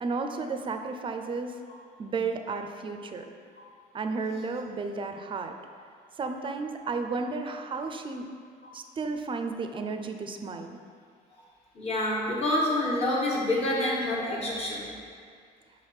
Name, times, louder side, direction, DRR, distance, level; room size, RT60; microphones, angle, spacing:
voice 1, 0.0-1.5 2.0-3.2 3.9-5.5 6.2-8.3 8.7-10.8, right 4 dB, 30° right, 6 dB, 0.4 m, -33 dB
voice 2, 11.7-15.0, left 1 dB, 35° left, -4 dB, 1.4 m, -27 dB
5.2 x 3.5 x 5.6 m, 2.1 s
cardioid pair, 110°, 17 cm